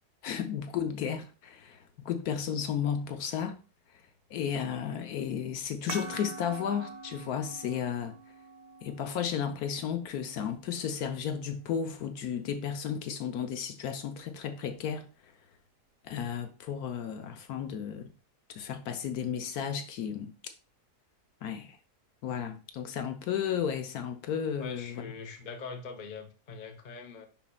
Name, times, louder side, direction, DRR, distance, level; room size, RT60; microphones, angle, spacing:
voice 1, 0.2-1.8 2.0-3.6 4.3-8.1 8.8-15.1 16.0-18.1 18.5-20.3 21.4-21.8 22.2-25.0, left 8 dB, 70° left, 1.2 m, -33 dB
sound 1, 5.9-11.0, right 4 dB, 70° right, 0.5 m, -45 dB
voice 2, 24.6-27.3, left 4 dB, 35° left, 0.8 m, -43 dB
10.0 x 4.2 x 2.3 m
omnidirectional pair, 1.7 m